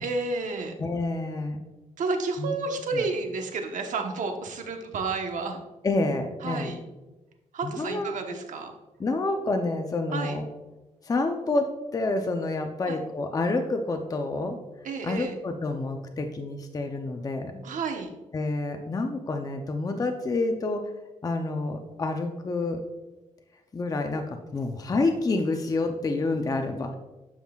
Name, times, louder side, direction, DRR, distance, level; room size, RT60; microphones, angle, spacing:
voice 1, 0.0-0.7 2.0-5.6 6.4-6.8 7.5-8.7 10.1-10.4 12.9-13.0 14.8-15.3 17.6-18.1, right 4 dB, 70° right, 4 dB, 1.1 m, -31 dB
voice 2, 0.8-1.6 2.4-2.6 2.9-3.0 5.8-6.8 7.6-8.4 9.0-10.4 11.0-11.7 11.9-14.6 15.0-17.5 18.3-20.8 21.2-22.8 23.7-26.9, left 2 dB, 25° left, 5 dB, 0.6 m, -28 dB
11.5 x 5.6 x 2.4 m, 1.1 s
cardioid pair, 110°, 13 cm